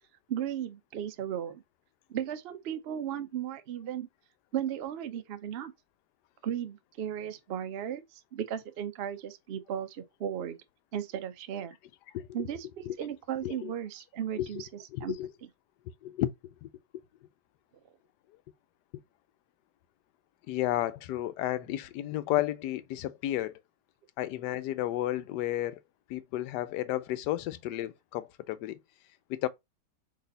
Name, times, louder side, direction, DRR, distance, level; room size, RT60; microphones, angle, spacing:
voice 1, 0.3-1.6 2.1-4.1 4.5-5.7 6.4-10.6 10.9-11.8 12.3-15.5, right 10 dB, 75° right, 0.5 m, -36 dB
voice 2, 14.9-15.3 16.0-16.3 16.6-16.7 20.5-23.6 24.2-25.8 26.1-28.8 29.3-29.5, left 14 dB, 85° left, 1.2 m, -32 dB
4.1 x 3.1 x 3.9 m
omnidirectional pair, 1.8 m